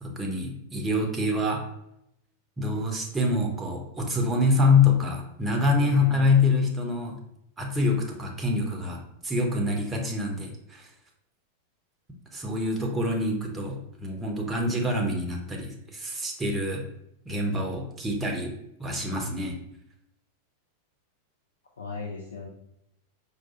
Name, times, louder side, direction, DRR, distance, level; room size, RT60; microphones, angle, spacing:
voice 1, 0.0-1.6 2.6-7.2 7.6-10.9 12.3-16.9 17.3-18.5 18.8-19.6, left 3 dB, 15° right, 1 dB, 0.7 m, -26 dB
voice 2, 5.8-6.3 21.8-22.5, left 4 dB, 70° left, 0 dB, 0.4 m, -37 dB
4.5 x 2.3 x 2.8 m, 0.78 s
figure-of-eight pair, 90°, 0 cm